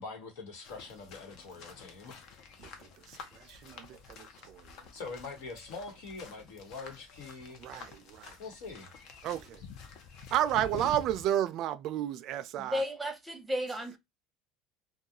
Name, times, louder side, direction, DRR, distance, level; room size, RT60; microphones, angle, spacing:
voice 1, 0.0-2.2 4.4-4.5 4.9-7.6 8.4-8.9, left 4 dB, 80° left, 1.1 m, -44 dB
sound 1, 0.6-11.3, left 6 dB, 65° left, 0.6 m, -49 dB
voice 2, 2.6-4.9 7.6-8.4 9.2-9.6 10.3-12.8, right 12 dB, 60° right, 0.3 m, -32 dB
voice 3, 12.7-14.0, equal, 10° right, 0.8 m, -33 dB
2.3 x 2.2 x 2.8 m
supercardioid pair, 95°, 0 cm